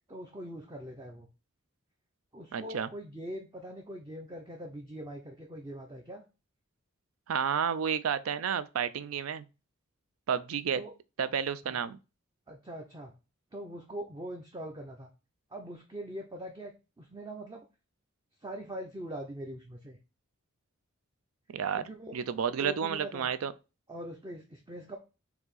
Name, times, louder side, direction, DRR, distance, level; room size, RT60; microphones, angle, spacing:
voice 1, 0.1-1.3 2.3-6.2 10.7-10.9 11.6-11.8 12.5-13.1 13.5-15.1 15.5-17.7 18.4-20.0 21.7-22.1 22.6-23.3 23.9-25.0, equal, 20° right, 0.5 m, -42 dB
voice 2, 2.5-2.9 7.3-9.4 10.3-10.8 11.2-12.0 21.5-21.8 22.1-23.5, right 7 dB, 80° right, 0.4 m, -31 dB
4.6 x 2.8 x 3.9 m
head